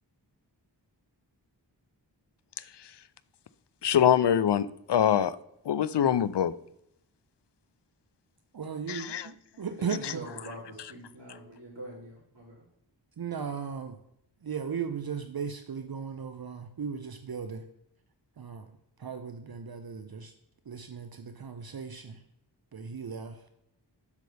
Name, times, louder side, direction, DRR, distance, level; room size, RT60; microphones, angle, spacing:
voice 1, 3.8-5.4 5.7-6.5 8.9-9.2, left 9 dB, 70° left, 16 dB, 0.5 m, -24 dB
voice 2, 8.5-9.1 9.6-10.2 13.2-14.0 14.4-17.7 18.4-18.7 19.0-20.3 20.7-22.2 22.7-23.5, right 6 dB, 60° right, 8 dB, 0.6 m, -36 dB
voice 3, 9.8-12.6, right 1 dB, 80° right, -4 dB, 2.9 m, -44 dB
8.2 x 6.6 x 3.3 m, 0.79 s
wide cardioid pair, 60°, 42 cm